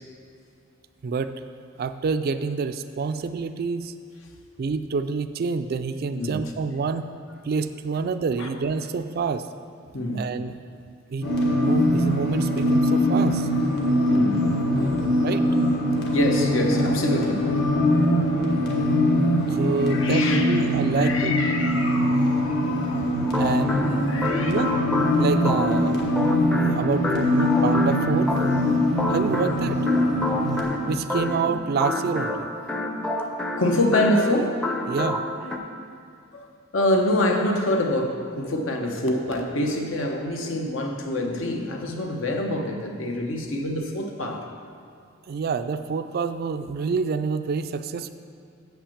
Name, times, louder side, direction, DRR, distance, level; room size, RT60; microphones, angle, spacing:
voice 1, 1.8-4.0 4.6-7.1 7.4-9.5 10.1-10.6 11.1-11.3 11.6-13.5 15.2-15.5 19.5-21.4 23.3-24.8 25.2-26.1 26.8-28.4 29.1-29.8 30.9-32.5 34.9-35.2 45.3-48.1, right 5 dB, 50° right, 10 dB, 0.3 m, -27 dB
voice 2, 9.9-10.3 11.2-11.3 14.1-14.5 14.7-15.1 16.1-17.5 19.8-20.6 21.0-23.5 23.9-24.5 33.6-34.6 35.4-35.6 36.3-36.5 36.7-44.4, left 1 dB, 75° left, 2 dB, 1.0 m, -26 dB
sound 1, 11.2-30.6, left 1 dB, 60° left, 1.4 m, -22 dB
sound 2, 23.2-35.6, left 1 dB, 5° left, 0.5 m, -29 dB
7.3 x 5.8 x 7.1 m, 2.3 s
head